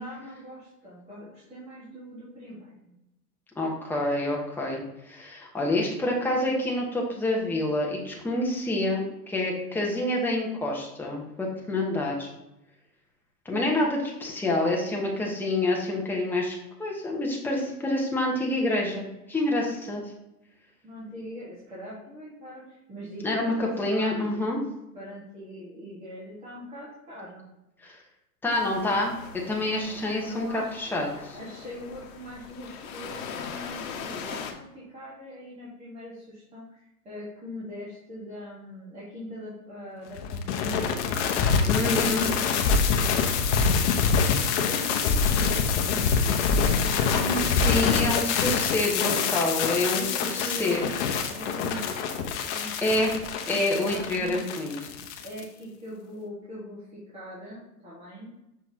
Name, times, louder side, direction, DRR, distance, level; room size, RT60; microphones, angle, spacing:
voice 1, 0.0-2.9 20.8-24.4 24.9-27.5 30.2-30.7 31.1-40.9 41.3-43.0 43.5-47.8 49.9-52.9 53.5-54.4 55.2-58.3, equal, 15° right, -9 dB, 1.6 m, -41 dB
voice 2, 3.6-4.8 5.1-12.3 13.4-20.0 23.2-24.6 27.8-28.0 28.4-31.1 41.6-42.3 47.1-50.0 50.3-50.8 52.8-53.1 53.5-54.8, left 1 dB, 5° left, -2 dB, 0.9 m, -27 dB
sound 1, 28.5-34.5, left 6 dB, 60° left, 1.2 m, -40 dB
sound 2, 40.2-55.4, left 5 dB, 45° left, 0.9 m, -25 dB
6.0 x 5.7 x 2.8 m, 0.91 s
hypercardioid pair, 140°, 47 cm